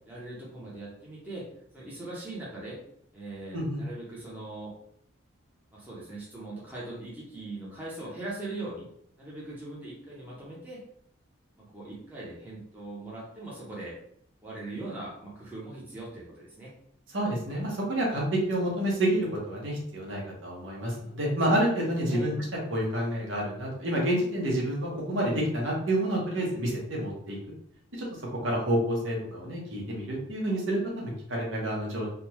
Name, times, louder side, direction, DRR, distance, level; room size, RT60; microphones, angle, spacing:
voice 1, 0.1-1.5 1.7-2.8 3.1-4.7 5.7-8.9 9.2-10.8 11.6-14.0 14.4-16.7 22.1-22.3, right 2 dB, 10° right, -7 dB, 0.9 m, -40 dB
voice 2, 17.1-22.3 22.7-27.4 28.0-28.1 28.4-32.1, right 1 dB, 70° right, -3 dB, 1.2 m, -28 dB
3.7 x 2.4 x 2.9 m, 0.68 s
head